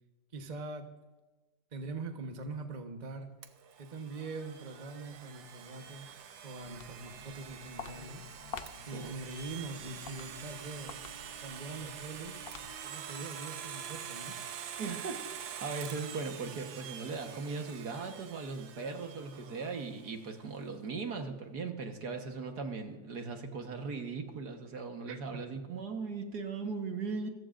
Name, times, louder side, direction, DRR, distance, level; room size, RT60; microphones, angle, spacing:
voice 1, 0.3-0.9 1.7-3.3 3.8-6.1 6.4-8.2 8.9-11.0 11.4-12.4 12.8-14.4 25.1-25.4, right 3 dB, 30° right, 4 dB, 1.0 m, -43 dB
Domestic sounds home sounds, 3.4-20.2, right 8 dB, 85° right, 1.7 m, -46 dB
Walk footsteps, 6.6-13.0, left 6 dB, 60° left, 0.6 m, -49 dB
voice 2, 14.8-27.3, right 4 dB, 60° right, 4 dB, 1.8 m, -38 dB
27.0 x 14.5 x 2.6 m, 1.2 s
omnidirectional pair, 2.0 m